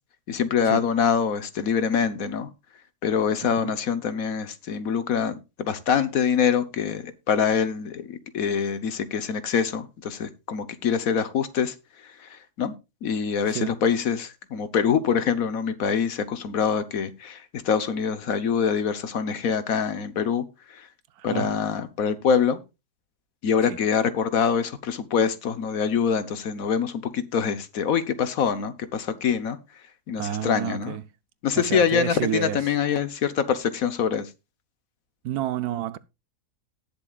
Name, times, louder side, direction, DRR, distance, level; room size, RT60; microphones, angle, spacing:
voice 1, 0.3-2.5 3.0-11.7 12.2-12.7 13.0-20.4 20.7-20.9 21.2-22.6 23.4-29.6 30.1-31.0 31.4-34.3, left 7 dB, 65° left, 1.4 m, -25 dB
voice 2, 3.4-3.7 13.5-13.8 21.2-21.5 23.7-23.8 30.2-31.0 31.6-32.7 35.2-36.0, right 11 dB, 80° right, 1.3 m, -30 dB
18.5 x 6.9 x 2.4 m
omnidirectional pair, 1.6 m